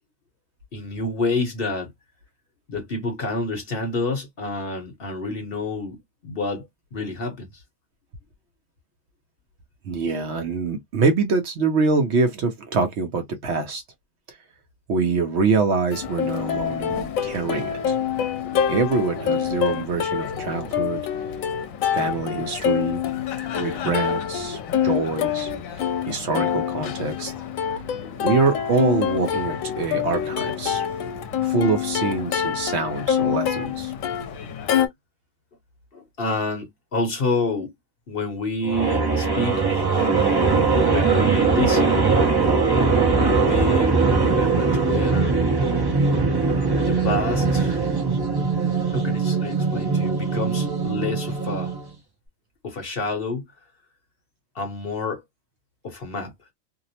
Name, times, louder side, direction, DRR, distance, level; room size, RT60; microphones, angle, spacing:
voice 1, 0.7-1.9 2.7-7.5 18.4-18.6 28.0-28.2 35.9-37.7 38.1-39.6 40.9-42.1 43.2-45.4 46.8-47.8 48.9-51.7 52.6-53.5 54.5-55.2 55.8-56.3, left 3 dB, 50° left, 0.9 m, -28 dB
voice 2, 9.8-13.8 14.3-14.4 14.9-18.0 18.7-21.0 21.9-23.0 23.6-27.3 28.2-30.9 31.4-33.9, right 4 dB, 60° right, 0.8 m, -25 dB
Plucked string instrument, 15.9-34.9, left 8 dB, 80° left, 1.0 m, -26 dB
sound 1, 38.6-51.9, right 4 dB, 25° right, 0.5 m, -21 dB
2.7 x 2.0 x 2.7 m
omnidirectional pair, 1.4 m